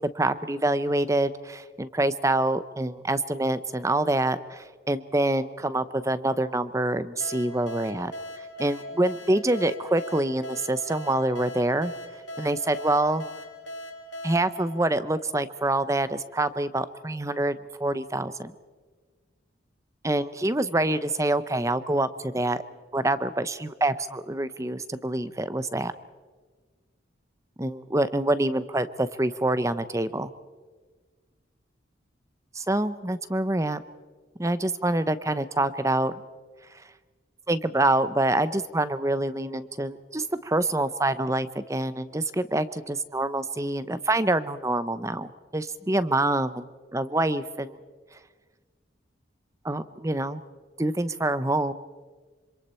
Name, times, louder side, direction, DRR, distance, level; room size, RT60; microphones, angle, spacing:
voice 1, 0.1-8.1 8.4-11.9 12.4-13.2 14.2-18.5 20.0-22.6 22.9-25.9 27.6-30.3 32.5-33.8 34.4-36.1 37.5-46.5 46.9-47.8 49.6-50.4 50.8-51.7, right 2 dB, 15° right, 14 dB, 0.7 m, -26 dB
sound 1, 7.2-15.6, equal, 80° left, 1.8 m, -40 dB
26.5 x 26.0 x 4.4 m, 1.4 s
head